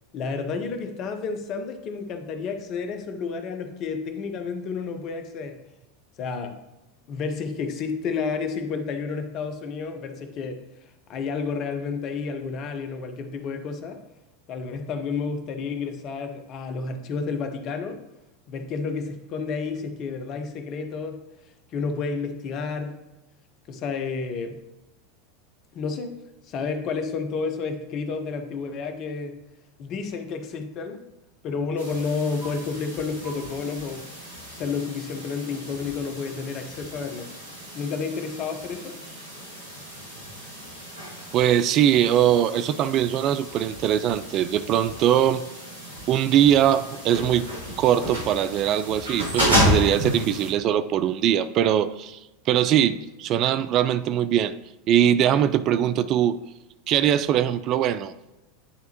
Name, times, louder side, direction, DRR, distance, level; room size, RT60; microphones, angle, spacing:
voice 1, 0.1-5.6 6.2-6.6 7.1-10.6 11.1-14.0 14.5-18.0 18.5-21.2 21.7-23.0 23.7-24.6 25.7-26.2 26.5-29.4 29.8-31.1 31.4-34.0 34.5-37.3 37.7-39.0, left 5 dB, 45° left, 7 dB, 0.8 m, -30 dB
sound 1, 31.8-50.5, equal, 80° right, 2.1 m, -32 dB
voice 2, 41.3-45.4 46.1-47.5 47.8-52.2 52.5-54.5 54.9-56.4 56.9-58.1, right 10 dB, 45° right, 14 dB, 0.3 m, -21 dB
9.8 x 3.4 x 2.9 m, 0.97 s
hypercardioid pair, 85°, 0 cm